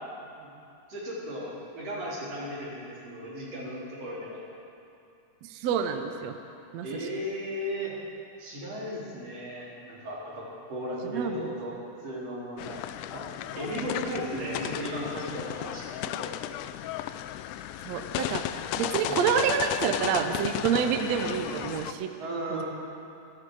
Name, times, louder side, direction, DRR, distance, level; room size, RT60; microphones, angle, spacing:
voice 1, 0.2-0.5 0.9-4.4 6.8-8.0 8.4-11.8 12.0-12.8 13.1-13.3 13.6-16.3 19.0-19.2 20.7-20.9 22.2-22.6, equal, 45° right, -7 dB, 4.7 m, -36 dB
voice 2, 5.4-6.3 6.7-7.1 11.0-11.5 17.9-18.5 18.8-22.1 22.5-22.6, right 7 dB, 80° right, 6 dB, 1.5 m, -28 dB
sound 1, 12.6-21.9, left 12 dB, 85° left, 1.8 m, -34 dB
27.5 x 10.5 x 4.8 m, 2.6 s
omnidirectional pair, 4.0 m